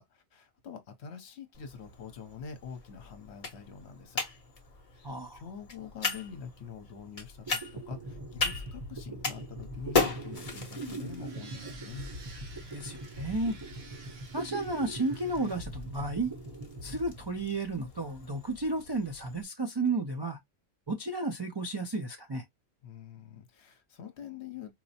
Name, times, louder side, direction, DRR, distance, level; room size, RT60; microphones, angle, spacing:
voice 1, 0.0-4.2 4.8-12.1 22.8-24.7, left 6 dB, 65° left, 1.0 m, -45 dB
sound 1, 1.5-19.4, left 4 dB, 35° left, 0.8 m, -38 dB
voice 2, 5.0-5.4 12.7-13.6 14.3-16.3 16.8-20.4 20.9-22.4, right 2 dB, 45° right, 0.3 m, -32 dB
sound 2, 7.2-7.3 7.5-17.9, right 1 dB, 25° right, 0.8 m, -42 dB
sound 3, 9.7-15.6, right 4 dB, 75° right, 1.2 m, -54 dB
4.4 x 2.0 x 2.7 m
omnidirectional pair, 1.3 m